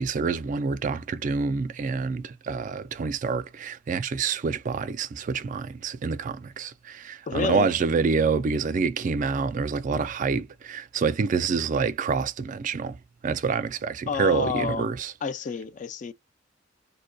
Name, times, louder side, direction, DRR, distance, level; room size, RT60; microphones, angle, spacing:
voice 1, 0.0-13.0 13.2-15.1, right 5 dB, 40° right, 0.3 m, -27 dB
voice 2, 7.3-7.7 14.1-14.9 15.2-16.1, left 5 dB, 40° left, 0.4 m, -29 dB
2.5 x 2.2 x 2.2 m
head